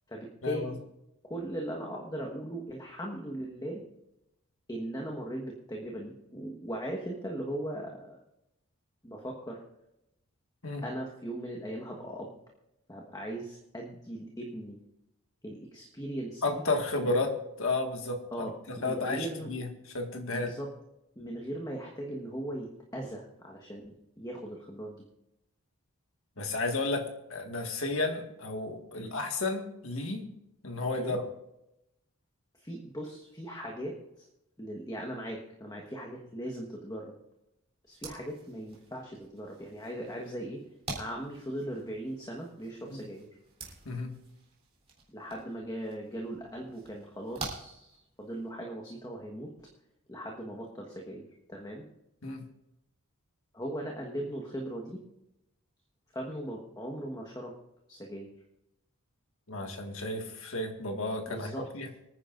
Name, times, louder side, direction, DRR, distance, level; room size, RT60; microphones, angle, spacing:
voice 1, 0.1-0.8 1.2-3.8 4.7-8.2 9.0-9.6 10.8-12.3 12.9-14.8 15.4-16.6 17.0-17.1 18.3-19.5 20.3-20.7 21.2-25.1 28.9-29.1 31.0-31.2 32.6-34.3 34.6-37.1 37.9-40.6 41.0-43.3 45.1-49.7 50.1-51.2 51.5-51.8 53.5-55.0 56.1-57.5 57.9-58.3 61.3-61.6, right 1 dB, 15° left, 0 dB, 1.3 m, -39 dB
voice 2, 16.4-17.3 17.6-18.5 18.8-19.7 19.9-20.5 26.4-30.2 30.6-31.3 42.9-43.0 43.9-44.1 52.2-52.4 59.5-61.9, left 2 dB, 60° left, 3 dB, 1.8 m, -32 dB
sound 1, 37.9-48.5, right 3 dB, 25° right, 3.4 m, -47 dB
25.0 x 9.8 x 2.6 m, 0.87 s
head